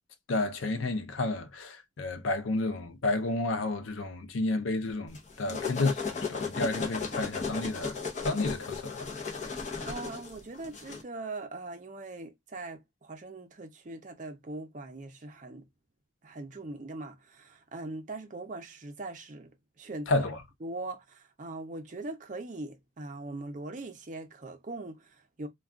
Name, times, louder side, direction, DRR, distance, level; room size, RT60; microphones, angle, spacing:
voice 1, 0.3-8.0 8.2-9.1 20.1-20.4, left 2 dB, 80° left, 0.5 m, -31 dB
sound 1, 5.1-11.0, left 5 dB, 35° left, 0.7 m, -35 dB
voice 2, 9.9-15.7 16.2-19.5 19.8-20.3 20.6-25.5, right 2 dB, 40° right, 0.5 m, -41 dB
2.3 x 2.3 x 3.5 m
head